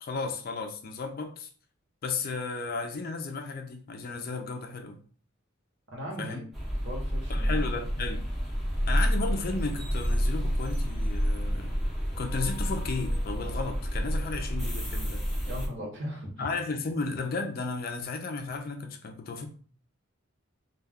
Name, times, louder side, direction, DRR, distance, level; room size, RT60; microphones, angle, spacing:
voice 1, 0.0-1.5 2.0-5.0 6.2-6.4 7.3-8.3 8.9-11.7 12.2-15.3 16.4-19.5, left 4 dB, 45° left, 5 dB, 0.4 m, -34 dB
voice 2, 5.9-6.4 6.7-7.7 15.4-16.5, equal, 60° right, -2 dB, 1.0 m, -38 dB
sound 1, 6.5-15.7, equal, ahead, 0.6 m, -29 dB
2.3 x 2.2 x 3.5 m, 0.43 s
head